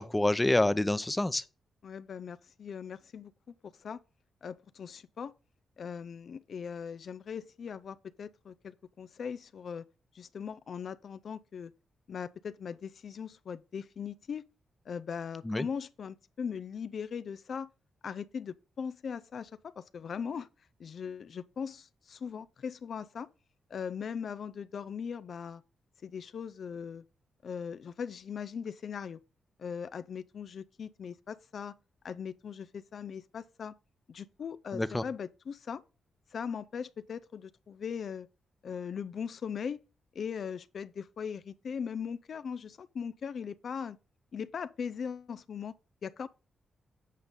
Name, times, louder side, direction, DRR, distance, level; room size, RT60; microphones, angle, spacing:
voice 1, 0.0-1.4 15.4-15.7 34.7-35.0, left 1 dB, 15° left, 0.6 m, -27 dB
voice 2, 1.8-4.0 4.4-5.3 5.8-9.9 10.1-11.7 12.1-14.4 14.9-17.7 18.0-23.3 23.7-25.6 26.0-27.0 27.4-29.2 29.6-31.7 32.0-33.7 34.1-35.8 36.3-38.3 38.6-39.8 40.1-44.0 44.3-45.8 46.0-46.3, left 7 dB, 60° left, 0.4 m, -39 dB
8.3 x 5.2 x 3.7 m
supercardioid pair, 50°, 0 cm